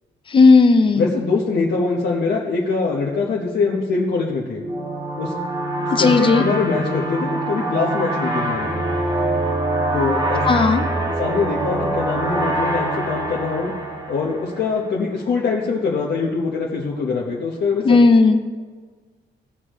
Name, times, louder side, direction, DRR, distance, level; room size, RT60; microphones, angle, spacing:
voice 1, 0.3-1.1 5.9-6.4 10.4-10.8 17.8-18.4, left 4 dB, 25° left, 8 dB, 0.6 m, -14 dB
voice 2, 0.9-4.6 5.2-5.3 6.0-8.7 9.9-10.6 11.2-13.7 14.1-18.0, left 4 dB, 65° left, -3 dB, 1.1 m, -23 dB
sound 1, 4.6-14.9, right 1 dB, 25° right, 1.5 m, -24 dB
17.0 x 6.5 x 3.1 m, 1.4 s
wide cardioid pair, 175°, 19 cm